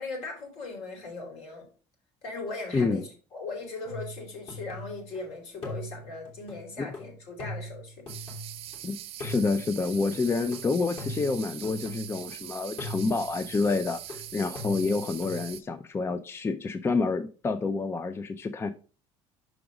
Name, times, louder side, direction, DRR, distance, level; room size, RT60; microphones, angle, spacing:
voice 1, 0.0-1.7 2.2-8.0 8.8-8.9, left 3 dB, 65° left, 1 dB, 3.9 m, -39 dB
voice 2, 2.7-3.0 6.8-6.9 8.8-18.7, left 4 dB, 20° left, 11 dB, 0.5 m, -28 dB
sound 1, 3.8-5.2 5.6-8.8 9.2-12.4 12.8-15.4, left 1 dB, 50° left, 3.1 m, -41 dB
sound 2, 8.1-15.6, right 13 dB, 60° right, 0.7 m, -42 dB
6.1 x 5.0 x 4.8 m, 0.37 s
cardioid pair, 115°, 12 cm